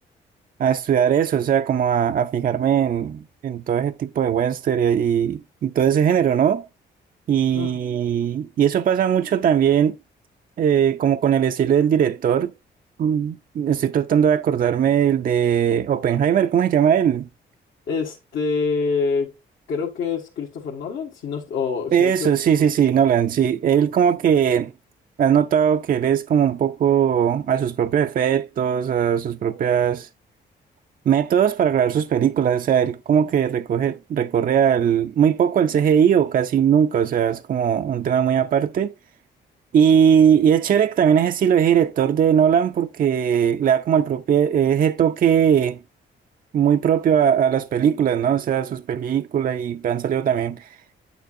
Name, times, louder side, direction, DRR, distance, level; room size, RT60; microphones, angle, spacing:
voice 1, 0.6-6.7 7.3-10.0 10.6-12.5 13.0-17.3 21.9-24.7 25.2-30.1 31.1-38.9 39.7-45.8 46.5-50.7, right 8 dB, 45° right, 0.4 m, -19 dB
voice 2, 17.9-19.3 19.7-22.3, left 5 dB, 75° left, 1.4 m, -26 dB
8.7 x 6.7 x 2.6 m
cardioid pair, 70°, 20 cm